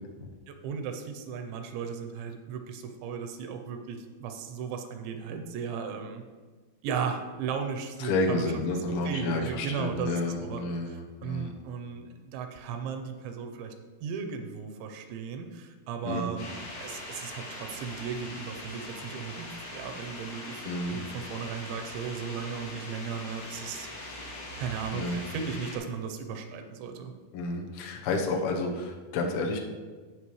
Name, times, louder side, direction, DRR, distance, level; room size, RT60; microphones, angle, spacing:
voice 1, 0.5-6.2 6.8-8.5 8.9-10.6 10.9-13.7 14.0-23.9 24.6-27.1, right 6 dB, 90° right, 5 dB, 3.0 m, -36 dB
voice 2, 8.0-11.5 16.0-16.3 20.7-21.0 24.9-25.2 27.3-29.6, left 2 dB, 90° left, 1 dB, 3.3 m, -30 dB
sound 1, 16.4-25.8, left 1 dB, 70° left, 4.4 m, -42 dB
16.0 x 5.5 x 3.2 m, 1.4 s
omnidirectional pair, 5.1 m